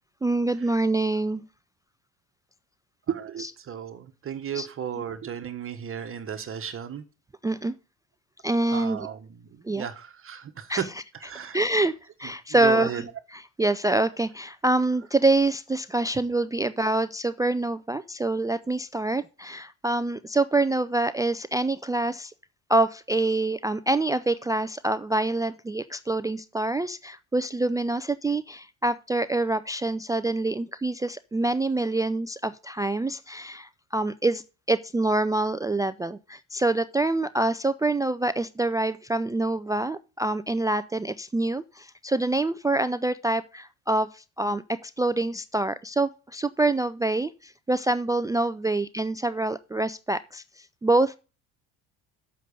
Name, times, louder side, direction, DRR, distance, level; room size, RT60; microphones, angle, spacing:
voice 1, 0.2-1.4 3.4-3.5 4.5-4.7 7.4-7.7 8.4-9.1 9.6-9.9 10.7-10.8 11.5-11.9 12.2-13.1 13.3-22.3 22.7-51.2, right 2 dB, 10° right, 0.3 m, -26 dB
voice 2, 3.1-7.0 8.7-10.9 11.2-11.6 12.5-13.0, right 8 dB, 40° right, 1.2 m, -34 dB
7.7 x 6.6 x 5.3 m
supercardioid pair, 85°, 35 cm